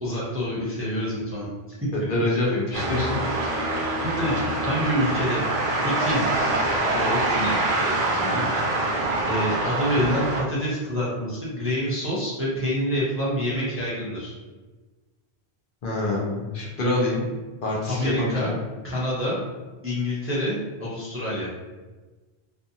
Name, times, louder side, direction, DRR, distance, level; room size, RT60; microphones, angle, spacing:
voice 1, 0.0-1.5 4.0-5.4 5.8-6.3 6.9-8.9 9.2-14.3 17.9-18.5 18.8-19.4 19.8-21.5, equal, 15° right, -8 dB, 0.5 m, -27 dB
voice 2, 1.9-3.1 15.8-17.2 17.6-18.5, left 2 dB, 60° left, -4 dB, 0.8 m, -25 dB
sound 1, 2.7-10.4, right 2 dB, 60° right, 0.6 m, -25 dB
2.6 x 2.4 x 2.6 m, 1.3 s
omnidirectional pair, 1.0 m